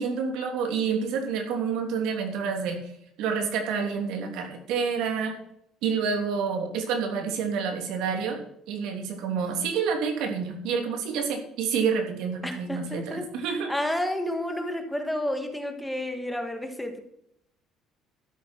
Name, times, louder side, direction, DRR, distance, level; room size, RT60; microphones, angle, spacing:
voice 1, 0.0-2.9 3.2-5.3 5.8-8.4 8.7-13.7, right 6 dB, 80° right, 4 dB, 3.0 m, -28 dB
voice 2, 12.4-13.3 13.7-17.0, left 1 dB, 5° left, 5 dB, 1.6 m, -30 dB
13.0 x 8.2 x 4.5 m, 0.75 s
cardioid pair, 140°, 0 cm